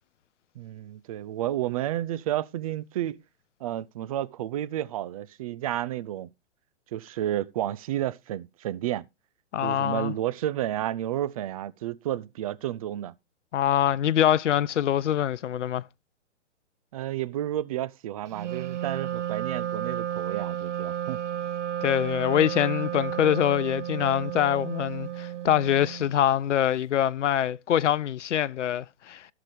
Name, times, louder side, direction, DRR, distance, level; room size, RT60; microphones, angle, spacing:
voice 1, 0.6-3.2 3.6-6.3 6.9-9.1 9.6-13.1 16.9-21.2, right 12 dB, 30° right, 0.5 m, -31 dB
voice 2, 9.5-10.1 13.5-15.8 21.8-29.3, left 10 dB, 85° left, 0.5 m, -24 dB
Wind instrument woodwind instrument, 18.3-26.1, right 10 dB, 80° right, 1.1 m, -32 dB
17.0 x 6.0 x 3.3 m
hypercardioid pair, 140°, 35 cm